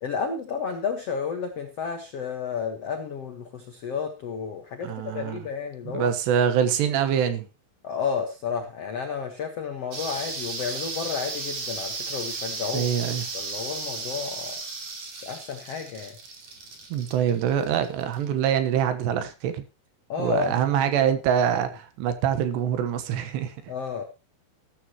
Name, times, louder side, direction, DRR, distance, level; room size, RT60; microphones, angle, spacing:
voice 1, 0.0-6.1 7.8-12.9 13.3-14.6 15.2-16.2 20.1-21.1 23.7-24.0, left 6 dB, 80° left, 1.3 m, -32 dB
voice 2, 4.8-5.4 5.9-7.5 12.7-13.2 16.9-19.6 20.2-23.5, right 9 dB, 75° right, 3.3 m, -24 dB
sound 1, 9.9-18.2, right 4 dB, 45° right, 3.7 m, -35 dB
14.0 x 13.5 x 3.0 m
omnidirectional pair, 5.2 m